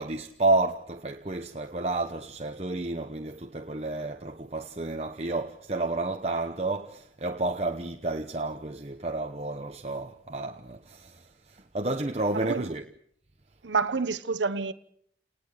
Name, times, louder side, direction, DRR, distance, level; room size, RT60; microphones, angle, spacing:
voice 1, 0.0-12.9, right 2 dB, 35° right, 0.9 m, -31 dB
voice 2, 12.3-12.7 13.6-14.7, right 4 dB, 85° right, 1.0 m, -28 dB
29.5 x 19.5 x 6.6 m
head